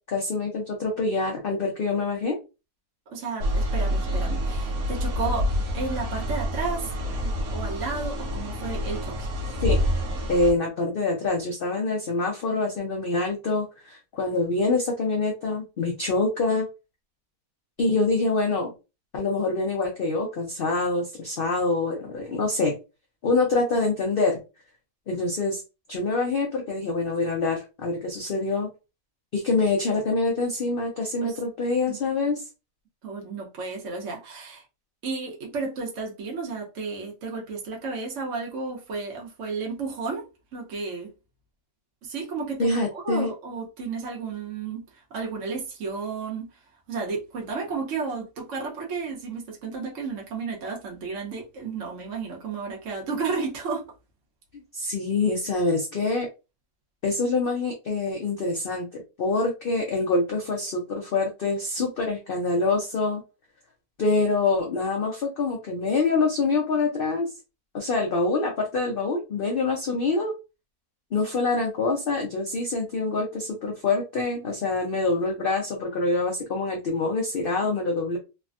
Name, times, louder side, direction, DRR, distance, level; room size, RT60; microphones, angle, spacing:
voice 1, 0.1-2.4 9.6-9.8 10.3-16.7 17.8-18.7 19.1-22.8 23.2-24.4 25.1-25.6 25.9-28.7 29.3-32.4 42.6-43.3 54.7-56.3 57.0-63.2 64.0-67.3 67.7-70.3 71.1-78.2, left 3 dB, 65° left, 0.5 m, -25 dB
voice 2, 3.1-9.3 31.2-31.4 31.9-32.0 33.0-34.6 35.0-40.3 40.5-41.1 42.0-46.5 46.9-53.8, right 4 dB, 55° right, 1.2 m, -33 dB
sound 1, 3.4-10.5, equal, 75° right, 1.3 m, -27 dB
3.3 x 2.2 x 2.4 m
omnidirectional pair, 1.6 m